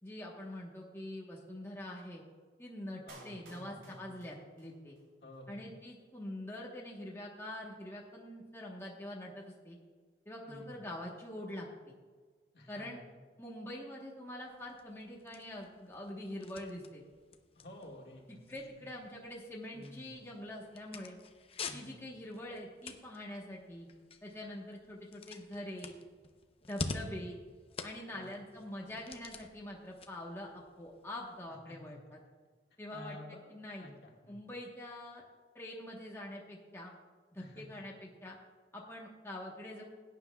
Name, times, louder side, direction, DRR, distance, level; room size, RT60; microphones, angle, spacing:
voice 1, 0.0-2.2 2.6-5.0 5.5-9.8 10.2-11.7 12.7-13.0 13.4-17.0 18.5-21.2 21.7-23.9 24.2-25.9 26.7-27.4 27.8-32.2 32.8-33.9 34.3-35.2 35.5-36.9 37.3-38.4 38.7-39.8, left 1 dB, 15° left, -2 dB, 1.1 m, -45 dB
voice 2, 3.1-4.2 5.2-5.7 10.5-10.8 12.5-13.0 17.6-18.6 19.7-20.1 21.7-22.0 28.1-28.5 31.7-31.9 32.7-33.4 33.8-34.5 37.4-37.8, left 1 dB, 65° left, -1 dB, 1.8 m, -52 dB
Clapping, 3.1-5.1 5.3-5.4, right 2 dB, 85° right, 2.7 m, -56 dB
sound 1, 14.4-31.4, left 3 dB, 35° left, 0.7 m, -48 dB
17.0 x 9.6 x 2.3 m, 1.5 s
head